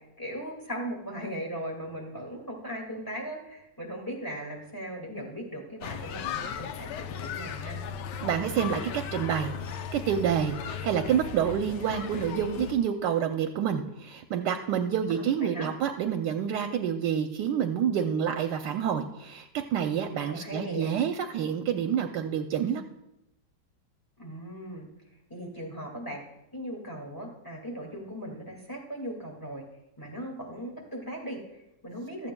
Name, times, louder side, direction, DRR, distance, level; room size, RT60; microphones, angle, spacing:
voice 1, 0.2-7.8 15.1-15.7 20.3-20.9 24.2-24.9 25.3-26.2 26.5-29.6 30.0-32.3, equal, 10° left, -2 dB, 1.9 m, -38 dB
sound 1, 5.8-12.7, left 8 dB, 75° left, 1.3 m, -37 dB
voice 2, 8.2-22.8, right 8 dB, 75° right, 6 dB, 1.2 m, -28 dB
15.5 x 13.0 x 2.2 m, 0.90 s
omnidirectional pair, 1.9 m